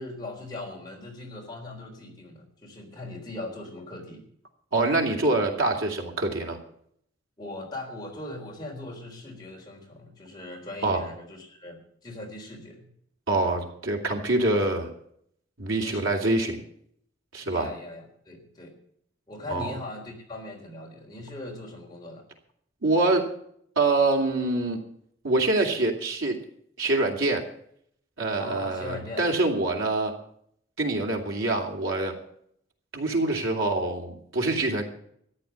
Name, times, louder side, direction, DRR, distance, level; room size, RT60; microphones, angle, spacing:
voice 1, 0.0-4.3 7.4-12.9 15.8-16.1 17.4-18.7 19.3-22.2 28.4-29.3, left 2 dB, 20° left, -1 dB, 3.7 m, -39 dB
voice 2, 4.7-6.6 10.8-11.0 13.3-14.9 15.6-16.6 17.3-17.7 19.5-19.7 22.8-23.3 23.8-24.8 25.2-26.4 26.8-27.5 28.2-30.1 30.8-32.2 32.9-34.8, right 2 dB, 85° right, 2 dB, 2.8 m, -25 dB
14.0 x 10.0 x 7.1 m, 0.67 s
head